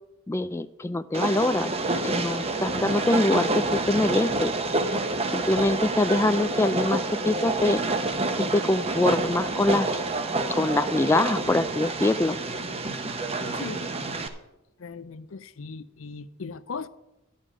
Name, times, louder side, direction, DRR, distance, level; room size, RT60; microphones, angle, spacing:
voice 1, 0.3-1.7 2.0-4.5 5.3-7.8 8.5-10.0 10.5-12.4, left 2 dB, 15° left, 0.3 m, -24 dB
Train, 1.1-14.3, right 2 dB, 30° right, 0.9 m, -28 dB
voice 2, 14.8-16.9, left 4 dB, 75° left, 0.6 m, -38 dB
11.5 x 5.3 x 8.5 m
head